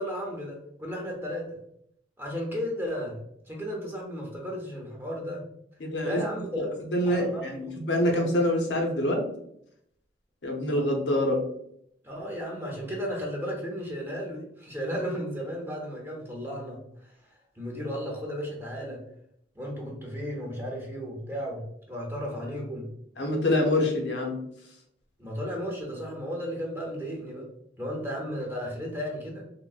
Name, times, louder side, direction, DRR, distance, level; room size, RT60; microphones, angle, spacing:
voice 1, 0.0-1.5 2.2-3.2 3.5-5.4 6.0-6.7 7.0-7.7 12.0-16.8 17.6-19.0 19.5-22.9 25.2-27.5 27.8-29.4, equal, 15° right, -1 dB, 0.7 m, -34 dB
voice 2, 5.8-6.2 6.6-9.3 10.4-11.5 23.2-24.5, left 1 dB, 80° left, 2 dB, 0.7 m, -26 dB
3.7 x 2.1 x 2.4 m, 0.72 s
head